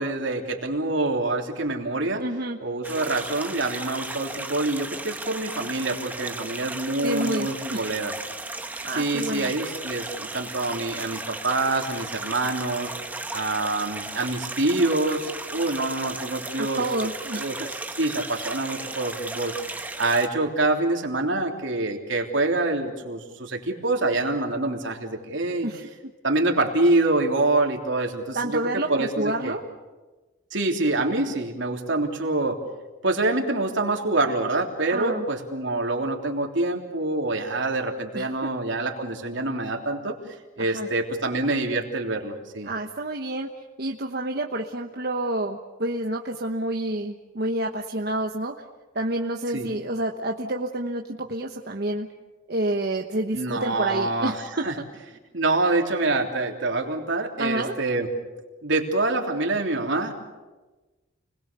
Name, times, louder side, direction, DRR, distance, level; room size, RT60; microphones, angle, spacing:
voice 1, 0.0-2.2 2.6-8.1 8.9-12.9 13.3-16.8 17.3-17.6 18.0-25.7 26.2-28.6 28.9-29.6 30.5-32.6 33.0-40.2 40.6-42.7 49.5-49.7 53.3-54.4 54.6-54.7 55.3-58.1 58.6-60.1, right 2 dB, 75° right, 2 dB, 3.3 m, -26 dB
voice 2, 2.2-2.6 7.0-7.9 8.8-9.5 16.5-17.5 25.6-25.9 28.3-29.6 34.9-35.3 38.1-38.5 40.6-40.9 42.6-48.5 48.9-52.1 52.5-54.7 57.4-57.7, right 1 dB, 55° right, 2 dB, 1.2 m, -29 dB
sound 1, 2.8-20.3, right 2 dB, 10° right, 1.0 m, -35 dB
30.0 x 21.0 x 6.9 m, 1.2 s
head